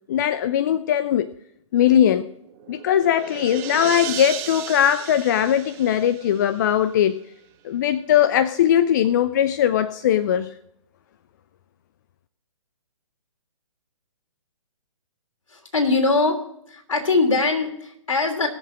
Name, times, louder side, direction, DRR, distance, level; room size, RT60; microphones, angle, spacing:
voice 1, 0.1-1.3 1.7-2.3 2.7-7.2 7.6-10.5, left 10 dB, 35° left, 13 dB, 0.5 m, -20 dB
sound 1, 2.4-7.0, right 13 dB, 25° right, 0.6 m, -35 dB
voice 2, 15.5-16.4 16.7-18.5, left 3 dB, 70° left, 3 dB, 3.2 m, -21 dB
19.5 x 6.8 x 5.1 m, 0.74 s
figure-of-eight pair, 130°, 17 cm